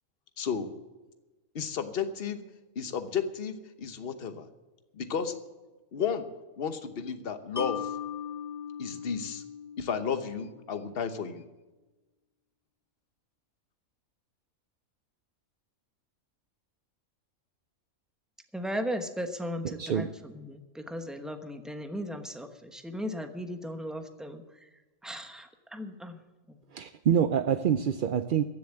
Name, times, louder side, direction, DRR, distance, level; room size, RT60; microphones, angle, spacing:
voice 1, 0.4-0.7 1.5-2.4 2.7-4.5 4.9-5.3 5.9-6.3 6.6-7.9 8.8-9.4 9.8-11.5, left 6 dB, 45° left, 9 dB, 1.1 m, -33 dB
Mallet percussion, 7.6-10.8, left 8 dB, 25° left, 0.4 m, -39 dB
voice 2, 18.5-24.7 25.0-26.2 26.5-26.6, equal, ahead, 6 dB, 0.9 m, -37 dB
voice 3, 19.8-20.1 26.7-28.4, right 8 dB, 60° right, 10 dB, 0.5 m, -26 dB
15.5 x 7.1 x 8.8 m, 1.2 s
omnidirectional pair, 1.4 m